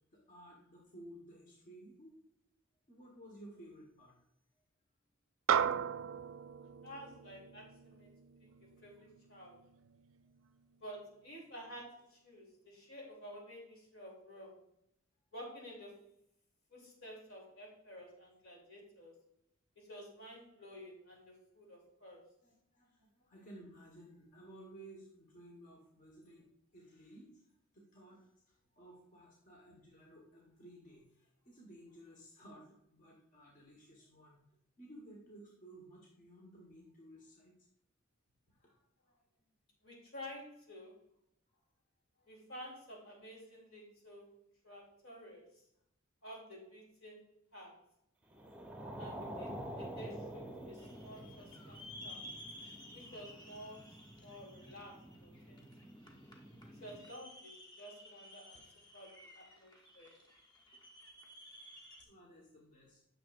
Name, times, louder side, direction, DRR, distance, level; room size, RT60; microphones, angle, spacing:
voice 1, 0.1-2.2 2.9-4.1 22.4-26.5 26.7-34.4 34.8-37.5 38.5-39.2 41.5-41.6 42.1-42.3 58.5-58.6 60.7-60.8 62.0-63.0, right 1 dB, 40° left, -3 dB, 1.3 m, -56 dB
sound 1, 5.5-10.1, right 8 dB, 75° right, 0.3 m, -37 dB
voice 2, 6.8-8.1 8.6-9.6 10.8-14.6 15.3-16.1 16.7-19.2 19.8-22.3 39.8-41.0 42.3-44.3 44.6-45.6 46.2-47.8 49.0-52.3 52.9-55.9 56.7-58.6 58.9-60.1, equal, 75° left, -2 dB, 2.9 m, -52 dB
sound 2, 48.3-57.1, right 1 dB, 5° right, 0.8 m, -48 dB
sound 3, 50.8-62.0, left 1 dB, 20° left, 0.9 m, -55 dB
9.6 x 6.5 x 2.5 m, 0.76 s
head